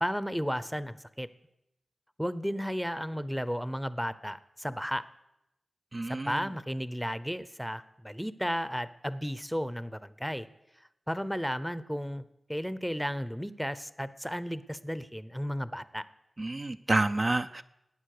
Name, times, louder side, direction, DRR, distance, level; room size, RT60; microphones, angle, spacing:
voice 1, 0.0-1.3 2.2-5.0 6.3-10.5 11.1-12.2 12.5-16.0, equal, ahead, 15 dB, 0.7 m, -33 dB
voice 2, 5.9-6.5 16.4-17.6, right 2 dB, 40° right, 8 dB, 0.5 m, -29 dB
19.0 x 8.9 x 6.6 m, 0.87 s
wide cardioid pair, 70°, 0 cm